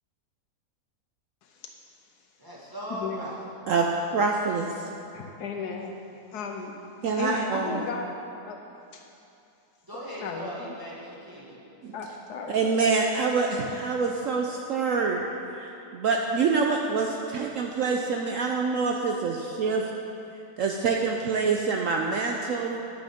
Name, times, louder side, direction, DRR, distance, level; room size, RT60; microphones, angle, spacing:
voice 1, 2.4-3.4 9.8-11.6, equal, 15° right, 1.5 m, -38 dB
voice 2, 2.9-3.3 5.1-5.9 6.3-6.7 7.2-8.1 8.4-8.6 8.9-9.0 10.2-10.5 11.9-12.6, left 5 dB, 75° left, 1.2 m, -34 dB
voice 3, 4.1-4.8 7.0-7.8 11.8-11.9 12.5-15.2 15.5-19.9 20.6-22.8, right 4 dB, 70° right, 0.8 m, -26 dB
10.0 x 9.0 x 3.6 m
omnidirectional pair, 1.8 m